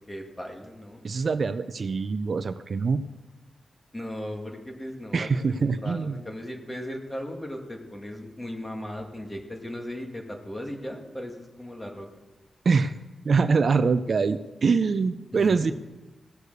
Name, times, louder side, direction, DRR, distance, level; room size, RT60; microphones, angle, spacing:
voice 1, 0.0-1.0 3.9-12.1 15.3-15.7, equal, 15° left, 2 dB, 2.0 m, -37 dB
voice 2, 1.0-3.0 5.1-6.2 12.7-12.9 13.2-15.7, right 4 dB, 50° right, 11 dB, 0.5 m, -24 dB
17.0 x 6.6 x 6.7 m, 1.1 s
wide cardioid pair, 130°, 0 cm